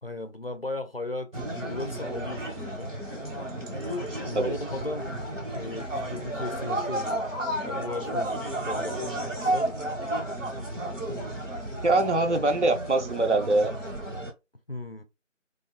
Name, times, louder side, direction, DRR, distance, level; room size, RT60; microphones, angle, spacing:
voice 1, 0.0-2.9 4.2-5.1 5.5-7.2 7.6-9.1 9.4-9.7 14.7-15.0, left 2 dB, 50° left, 0.4 m, -36 dB
sound 1, 1.3-14.3, right 1 dB, 85° right, 1.3 m, -32 dB
voice 2, 11.8-13.7, right 2 dB, 65° right, 0.7 m, -23 dB
3.5 x 2.4 x 2.2 m
figure-of-eight pair, 175°, 38 cm